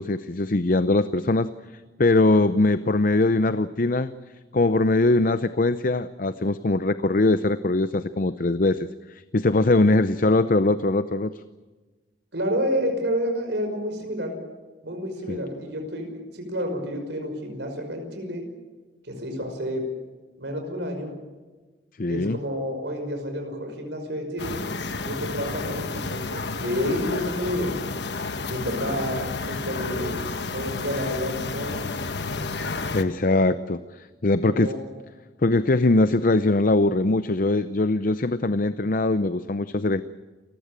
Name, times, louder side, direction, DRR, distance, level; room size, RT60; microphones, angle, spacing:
voice 1, 0.0-1.5 2.0-4.1 4.5-8.8 9.1-11.3 15.3-15.4 22.0-22.4 32.9-34.7 35.4-40.0, left 2 dB, 45° left, 12 dB, 0.6 m, -21 dB
voice 2, 12.3-14.4 14.8-18.4 19.0-19.8 20.4-21.2 22.1-24.6 25.0-27.7 28.5-30.2 30.5-31.9 34.5-34.8, equal, 70° right, 4 dB, 5.7 m, -29 dB
sound 1, 24.4-33.0, left 3 dB, 65° left, 1.3 m, -31 dB
29.0 x 15.0 x 8.9 m, 1.3 s
head